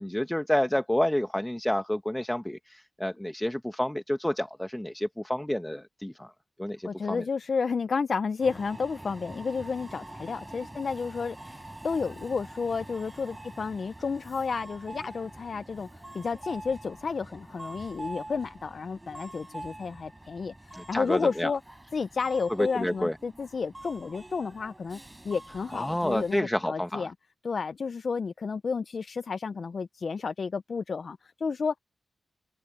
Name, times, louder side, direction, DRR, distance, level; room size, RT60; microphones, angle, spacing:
voice 1, 0.0-6.3 6.6-7.2 20.7-21.5 22.6-23.2 25.7-27.1, left 1 dB, 10° left, 1.0 m, -29 dB
voice 2, 6.8-21.6 21.9-25.0 25.2-27.1 27.4-31.8, left 5 dB, 60° left, 0.5 m, -31 dB
Subway metro underground, 8.4-26.4, right 1 dB, 15° right, 4.7 m, -45 dB
cardioid pair, 65°, 0 cm